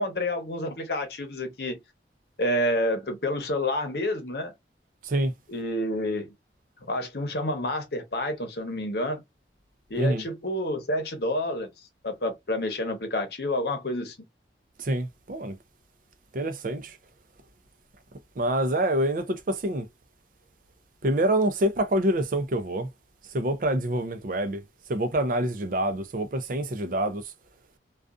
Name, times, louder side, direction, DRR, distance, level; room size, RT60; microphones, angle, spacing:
voice 1, 0.0-1.8 2.4-4.5 5.5-6.3 6.9-9.2 9.9-11.7 12.0-14.1, left 1 dB, 65° left, 0.8 m, -29 dB
voice 2, 14.8-15.6 16.3-17.0 18.4-19.9 21.0-22.9 23.3-24.6 24.9-27.2, right 1 dB, 50° right, 0.5 m, -26 dB
2.5 x 2.3 x 2.3 m
head